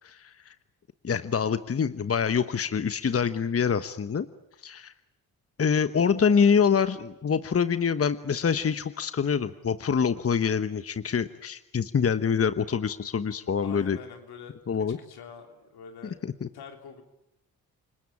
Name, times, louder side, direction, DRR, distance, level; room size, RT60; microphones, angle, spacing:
voice 1, 0.2-0.5 1.0-4.3 4.6-4.9 5.6-14.0 14.7-15.0 16.4-16.5, left 6 dB, 40° left, 12 dB, 1.1 m, -25 dB
voice 2, 13.6-14.6 15.0-16.2 16.5-17.0, left 6 dB, 80° left, 5 dB, 3.7 m, -45 dB
29.0 x 19.5 x 9.9 m, 0.83 s
supercardioid pair, 55°, 38 cm